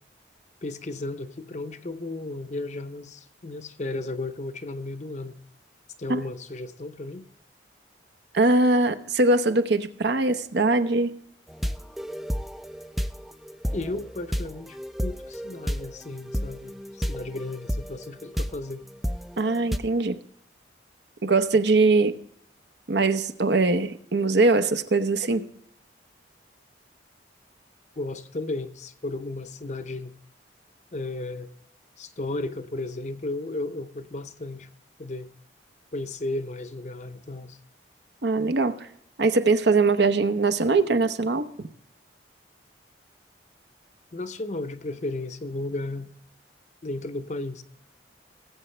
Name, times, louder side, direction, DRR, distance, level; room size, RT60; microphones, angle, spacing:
voice 1, 0.6-5.4 6.0-7.3 13.7-18.9 28.0-30.1 30.9-31.5 32.0-34.7 35.0-35.3 35.9-37.6 44.1-46.1 46.8-47.6, left 2 dB, 40° left, 0.6 m, -34 dB
voice 2, 8.3-11.1 19.4-20.2 21.2-22.2 22.9-25.4 38.2-38.9 39.2-41.7, right 3 dB, 65° right, 0.8 m, -22 dB
sound 1, 11.5-19.8, equal, ahead, 0.3 m, -32 dB
19.0 x 7.9 x 3.2 m
head